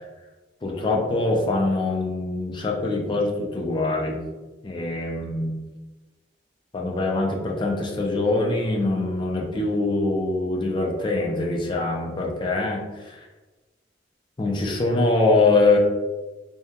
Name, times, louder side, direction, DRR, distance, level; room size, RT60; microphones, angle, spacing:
voice 1, 0.6-4.2 4.6-5.6 6.7-13.2 14.4-15.8, left 2 dB, 25° left, -1 dB, 0.4 m, -23 dB
2.8 x 2.3 x 2.3 m, 1.2 s
head